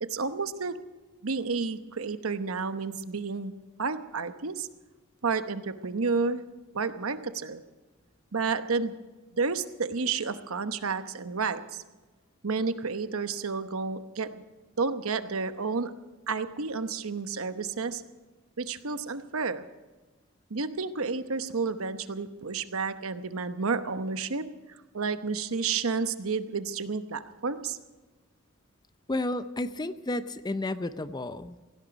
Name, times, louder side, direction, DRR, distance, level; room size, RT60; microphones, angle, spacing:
voice 1, 0.0-0.8 1.2-3.5 3.8-4.7 5.2-6.4 6.7-7.6 8.3-8.9 9.3-11.8 12.4-14.4 14.8-15.9 16.3-18.0 18.6-19.6 20.5-24.5 24.9-27.8, right 4 dB, 75° right, 10 dB, 0.9 m, -31 dB
voice 2, 29.1-31.6, left 2 dB, 20° left, 12 dB, 0.5 m, -32 dB
17.0 x 16.5 x 5.2 m, 1.2 s
head